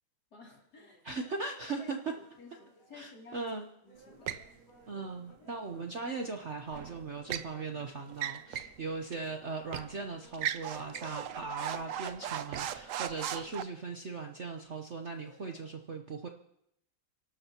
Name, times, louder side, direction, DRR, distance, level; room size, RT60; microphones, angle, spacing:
voice 1, 0.3-1.0 1.8-1.9 2.2-3.4 3.8-4.3, left 3 dB, 55° left, -1 dB, 3.4 m, -53 dB
sound 1, 0.7-15.7, equal, 90° left, 4.4 m, -62 dB
voice 2, 1.0-2.0 2.9-3.7 4.9-16.3, right 4 dB, 45° right, 3 dB, 1.0 m, -39 dB
sound 2, 4.3-4.5 6.7-7.5 8.1-8.8 9.1-9.2 9.7-9.9 10.3-13.6, right 10 dB, 75° right, 0.7 m, -37 dB
29.0 x 12.5 x 2.9 m, 0.75 s
omnidirectional pair, 2.1 m